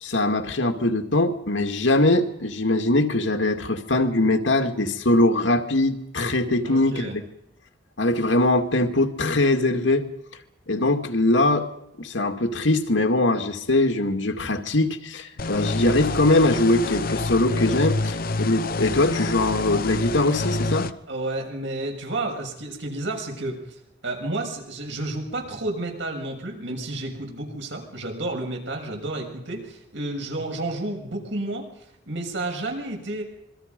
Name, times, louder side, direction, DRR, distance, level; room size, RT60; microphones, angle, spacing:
voice 1, 0.0-7.2 8.0-10.1 10.7-11.7 12.0-20.9, left 2 dB, 75° left, 6 dB, 2.3 m, -22 dB
voice 2, 6.6-7.1 21.1-31.6 32.1-33.2, right 2 dB, 70° right, 2 dB, 6.7 m, -31 dB
sound 1, 15.4-20.9, left 2 dB, 45° left, 0.8 m, -27 dB
27.0 x 23.5 x 5.4 m, 0.80 s
head